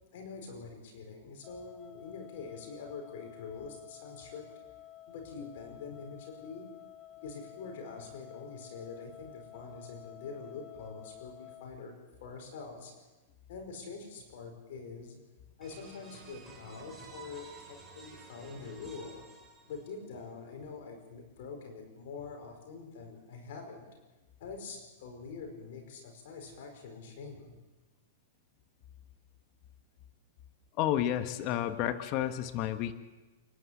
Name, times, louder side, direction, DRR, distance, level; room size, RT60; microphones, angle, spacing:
voice 1, 0.1-4.4 5.1-6.6 7.2-12.0 12.2-12.9 13.5-15.2 15.6-19.2 19.7-23.9 24.4-27.5, left 4 dB, 65° left, 3 dB, 5.2 m, -45 dB
sound 1, 1.4-11.7, left 12 dB, 25° left, 1.0 m, -52 dB
sound 2, 15.6-20.2, right 3 dB, 5° right, 6.0 m, -52 dB
voice 2, 30.8-32.9, left 11 dB, 40° left, 9 dB, 1.3 m, -31 dB
28.5 x 11.0 x 8.4 m, 1.2 s
hypercardioid pair, 140°, 0 cm